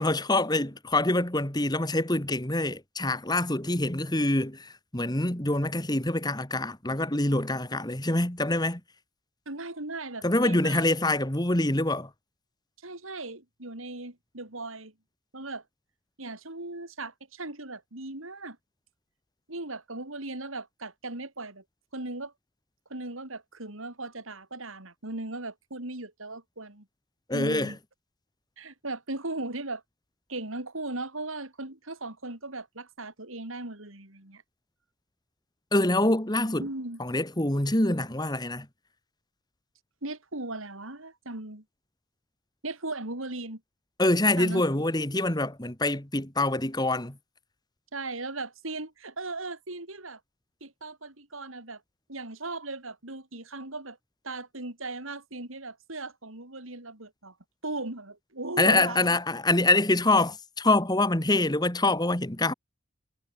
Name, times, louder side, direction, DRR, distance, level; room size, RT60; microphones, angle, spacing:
voice 1, 0.0-8.8 10.2-12.1 27.3-27.7 35.7-36.7 37.0-38.7 44.0-47.2 58.6-62.5, left 2 dB, 20° left, 2.2 m, -25 dB
voice 2, 9.5-10.8 12.8-14.9 15.3-15.6 16.2-18.6 19.5-21.6 21.9-22.3 22.9-26.8 27.3-27.8 28.6-29.8 30.3-34.4 36.6-37.0 40.0-41.6 42.6-43.6 44.4-44.6 47.9-50.2 50.6-51.8 52.1-54.0 54.2-57.3 57.6-59.2, right 2 dB, 80° right, 4.8 m, -37 dB
head